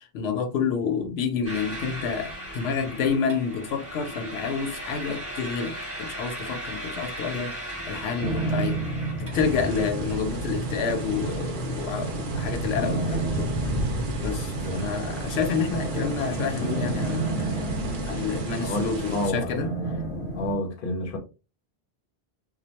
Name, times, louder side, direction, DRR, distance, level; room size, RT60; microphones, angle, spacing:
voice 1, 0.0-8.8 9.3-13.5 14.2-17.6 18.1-19.7, left 6 dB, 90° left, 0.9 m, -29 dB
sound 1, 1.4-9.9, equal, 15° right, 0.6 m, -37 dB
sound 2, 8.2-20.5, right 2 dB, 35° left, 0.8 m, -31 dB
sound 3, 9.3-19.3, right 1 dB, 60° right, 0.8 m, -33 dB
voice 2, 18.6-19.5 20.3-21.2, left 1 dB, 60° left, 0.8 m, -29 dB
2.2 x 2.1 x 2.8 m
omnidirectional pair, 1.0 m